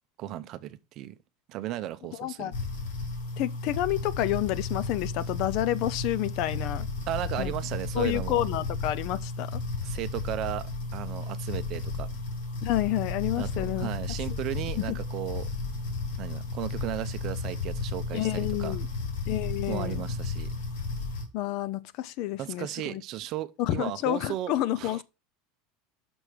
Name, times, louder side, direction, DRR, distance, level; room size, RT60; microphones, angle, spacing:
voice 1, 0.2-1.1 1.5-2.5 7.1-8.4 9.8-12.1 13.3-15.5 16.2-18.8 19.7-20.5 22.4-25.0, right 13 dB, 40° right, 0.6 m, -35 dB
voice 2, 2.2-2.5 3.4-6.9 7.4-7.5 7.9-9.6 12.6-13.9 14.9-15.0 18.1-18.9 19.3-20.0 21.3-23.0 23.6-25.0, left 14 dB, 45° left, 0.4 m, -29 dB
sound 1, 2.5-21.3, left 3 dB, 70° left, 3.6 m, -33 dB
6.1 x 6.1 x 5.0 m
supercardioid pair, 170°, 0 cm